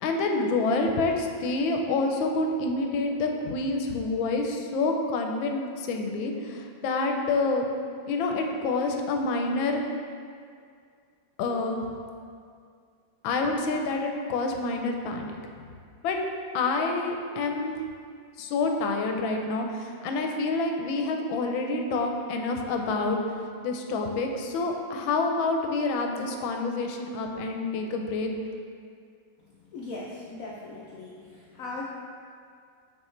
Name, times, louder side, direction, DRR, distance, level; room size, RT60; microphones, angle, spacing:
voice 1, 0.0-7.6 8.1-9.8 11.4-11.8 13.2-15.4 16.0-16.2 16.5-17.7 18.4-23.2 23.6-28.3, left 3 dB, 85° left, 3 dB, 1.4 m, -27 dB
voice 2, 29.7-31.9, left 3 dB, 70° left, -4 dB, 0.8 m, -39 dB
8.6 x 3.9 x 3.1 m, 2.2 s
omnidirectional pair, 2.1 m